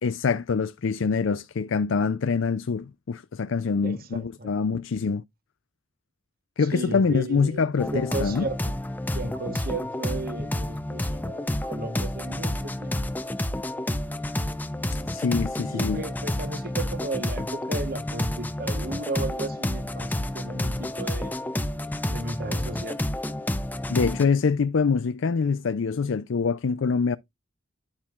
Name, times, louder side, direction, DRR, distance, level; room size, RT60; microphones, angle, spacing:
voice 1, 0.0-5.2 6.6-8.5 14.9-16.0 23.9-27.2, left 5 dB, 75° left, 0.5 m, -25 dB
voice 2, 3.8-4.5 6.7-8.7 9.1-13.0 15.7-21.3 22.1-23.0, right 2 dB, 45° right, 1.2 m, -35 dB
sound 1, 7.8-24.2, left 1 dB, 10° left, 0.6 m, -30 dB
10.5 x 7.3 x 2.4 m
head